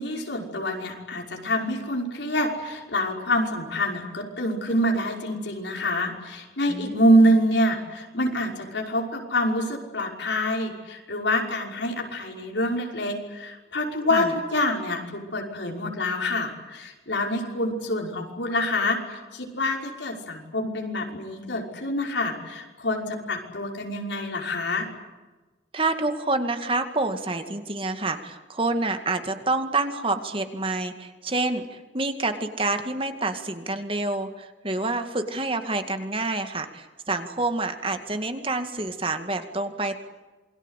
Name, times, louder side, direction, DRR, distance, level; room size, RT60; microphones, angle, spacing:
voice 1, 0.0-15.0 15.3-24.9, equal, 85° left, 1 dB, 5.8 m, -26 dB
voice 2, 6.7-7.2 14.1-14.3 25.7-40.0, right 2 dB, 30° right, 7 dB, 2.1 m, -28 dB
27.5 x 23.0 x 8.3 m, 1.2 s
head